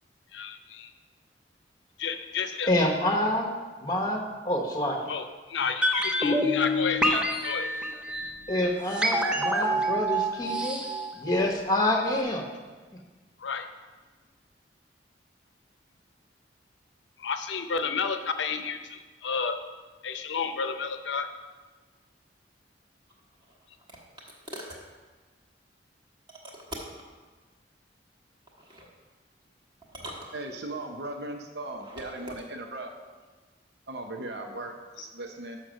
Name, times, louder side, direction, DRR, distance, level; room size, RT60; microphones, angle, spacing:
voice 1, 0.3-0.9 2.0-2.7 5.1-7.7 13.4-13.7 17.2-19.6 20.0-21.3, left 5 dB, 85° left, 8 dB, 0.6 m, -31 dB
voice 2, 2.7-3.5 3.8-5.1 8.5-10.8 11.1-12.5, left 1 dB, 20° left, 2 dB, 1.0 m, -27 dB
sound 1, 5.8-11.9 12.1-12.2, equal, 5° right, 0.6 m, -27 dB
sound 2, 23.1-24.9 26.3-27.1 28.5-28.9 29.8-30.9 31.7-32.5, equal, 25° right, 1.2 m, -43 dB
voice 3, 30.3-32.9 33.9-35.6, right 2 dB, 65° right, 4 dB, 0.7 m, -38 dB
6.5 x 5.8 x 6.2 m, 1.3 s
head